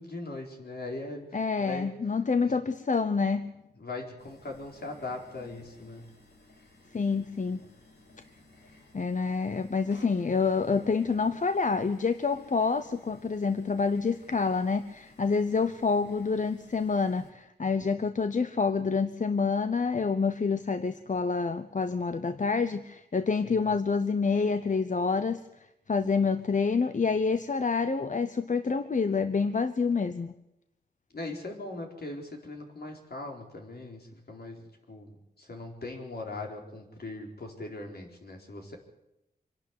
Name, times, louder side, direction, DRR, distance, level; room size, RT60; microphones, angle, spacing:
voice 1, 0.0-1.9 2.4-2.6 3.8-6.1 23.4-23.7 31.1-38.8, left 2 dB, 70° left, 1 dB, 4.4 m, -40 dB
voice 2, 1.3-3.5 6.9-7.7 8.9-25.4 25.9-30.3, left 4 dB, 50° left, 11 dB, 0.8 m, -27 dB
sound 1, 4.2-17.3, left 2 dB, 90° left, 4.0 m, -56 dB
25.0 x 12.0 x 9.6 m, 0.90 s
wide cardioid pair, 85°, 17 cm